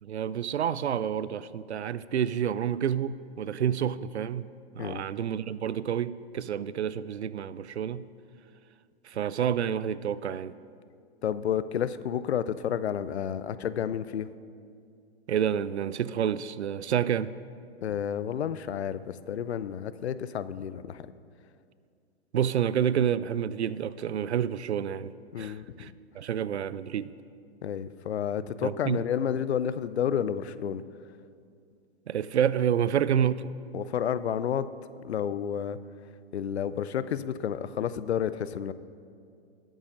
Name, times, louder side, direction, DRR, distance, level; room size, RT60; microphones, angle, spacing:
voice 1, 0.0-4.5 4.7-8.1 9.0-10.5 15.3-17.3 22.3-27.1 28.6-29.0 32.1-33.5, right 9 dB, 85° right, 17 dB, 0.5 m, -29 dB
voice 2, 11.2-14.3 17.8-21.1 25.3-25.7 27.6-30.8 33.7-34.7 35.0-35.8 36.3-38.7, left 9 dB, 80° left, 15 dB, 0.6 m, -30 dB
19.5 x 8.9 x 2.6 m, 2.4 s
hypercardioid pair, 120°, 32 cm